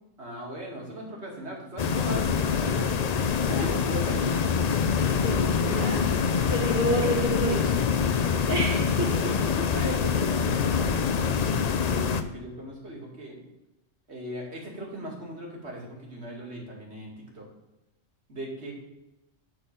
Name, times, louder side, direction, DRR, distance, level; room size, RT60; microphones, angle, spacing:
voice 1, 0.2-2.9 3.6-4.3 9.2-13.4 14.1-17.5 18.3-18.7, right 1 dB, 55° right, -2 dB, 2.6 m, -39 dB
sound 1, 1.8-12.2, left 6 dB, 55° left, 0.4 m, -25 dB
voice 2, 3.4-4.2 5.2-6.1 6.5-7.7 8.3-9.3, right 1 dB, 85° right, -4 dB, 3.1 m, -30 dB
10.5 x 4.3 x 6.7 m, 0.96 s
omnidirectional pair, 1.3 m